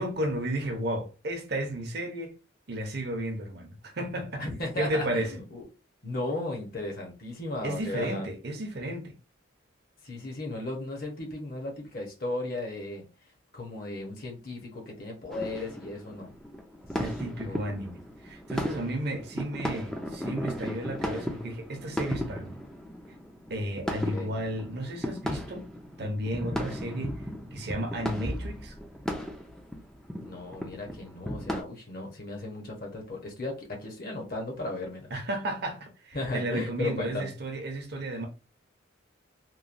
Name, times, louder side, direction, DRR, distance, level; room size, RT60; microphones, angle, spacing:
voice 1, 0.0-2.3 2.7-4.4 4.8-5.4 7.6-9.1 17.0-22.5 23.5-25.7 26.0-27.2 27.5-28.8 35.1-38.3, right 1 dB, 55° right, 0.7 m, -33 dB
voice 2, 4.4-5.6 6.0-8.3 10.0-13.0 13.5-16.3 17.2-17.6 23.8-24.3 30.2-35.1 36.1-37.3, left 2 dB, 50° left, 0.9 m, -36 dB
sound 1, 15.3-31.6, equal, 5° left, 0.4 m, -36 dB
3.0 x 2.1 x 2.5 m
head